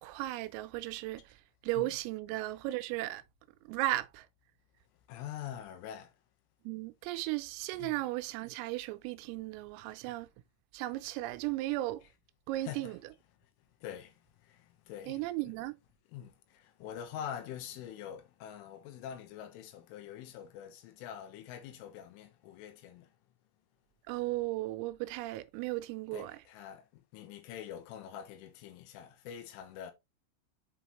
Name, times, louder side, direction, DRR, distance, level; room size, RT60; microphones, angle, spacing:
voice 1, 0.0-1.4 1.6-3.2 3.7-4.3 6.7-10.3 10.7-12.0 12.5-13.0 15.1-15.8 24.1-26.3, right 17 dB, 85° right, 3.4 m, -35 dB
voice 2, 5.1-6.1 7.8-8.1 12.0-12.1 12.6-13.5 13.8-15.5 16.1-23.2 26.1-29.9, left 9 dB, 75° left, 3.5 m, -45 dB
8.0 x 5.6 x 3.0 m
omnidirectional pair, 5.9 m